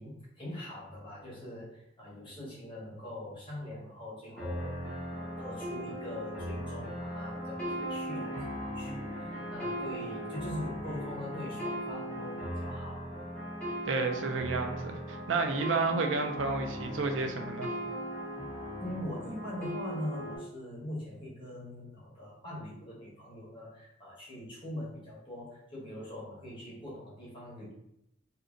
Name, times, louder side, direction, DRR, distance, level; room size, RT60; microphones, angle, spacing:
voice 1, 0.0-13.1 18.8-27.7, left 1 dB, 25° left, -7 dB, 1.1 m, -42 dB
sound 1, 4.4-20.4, equal, 5° left, 1.1 m, -38 dB
voice 2, 13.9-17.7, right 3 dB, 85° right, 5 dB, 0.5 m, -31 dB
2.7 x 2.6 x 3.6 m, 0.79 s
head